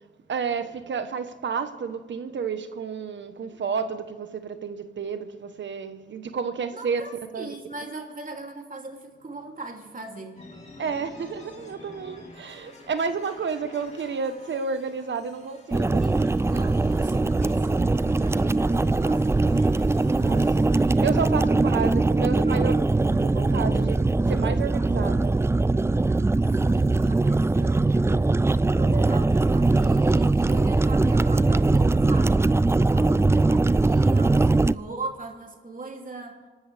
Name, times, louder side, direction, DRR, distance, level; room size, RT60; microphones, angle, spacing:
voice 1, 0.3-7.0 7.3-7.5 10.8-16.0 20.1-22.7 23.1-24.0 24.3-25.4, right 5 dB, 80° right, 1.2 m, -31 dB
voice 2, 6.7-10.4 16.0-16.2 16.5-20.1 22.5-23.3 26.4-28.4 28.7-32.5 32.7-36.4, right 3 dB, 45° right, 3.1 m, -40 dB
sound 1, 10.4-20.7, left 2 dB, 40° left, 4.8 m, -49 dB
sound 2, 15.7-34.7, right 2 dB, 15° right, 0.4 m, -21 dB
27.0 x 12.5 x 3.5 m
cardioid pair, 65°, 19 cm